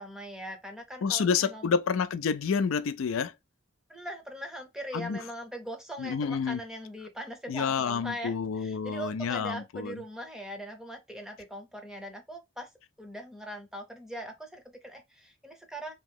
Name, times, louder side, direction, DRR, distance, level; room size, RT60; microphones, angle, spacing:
voice 1, 0.0-1.7 3.9-12.7 13.0-15.9, equal, 5° right, 0.6 m, -41 dB
voice 2, 1.0-3.3 4.9-5.2 6.0-6.6 7.5-9.9, left 6 dB, 85° left, 0.4 m, -29 dB
3.0 x 2.8 x 3.6 m
head